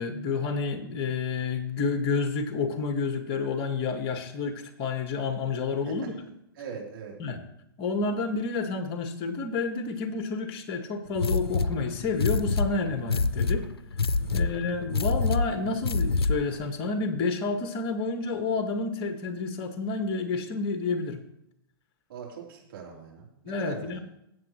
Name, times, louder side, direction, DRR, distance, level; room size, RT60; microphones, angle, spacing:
voice 1, 0.0-6.1 7.2-7.4 7.8-13.7 14.3-21.2 23.4-24.0, left 4 dB, 40° left, 7 dB, 1.7 m, -29 dB
voice 2, 6.5-7.2 14.2-14.5 22.1-24.0, right 6 dB, 65° right, -2 dB, 3.6 m, -41 dB
sound 1, 11.1-16.6, left 3 dB, 90° left, 0.5 m, -27 dB
16.0 x 7.5 x 3.1 m, 0.80 s
hypercardioid pair, 110°, 13 cm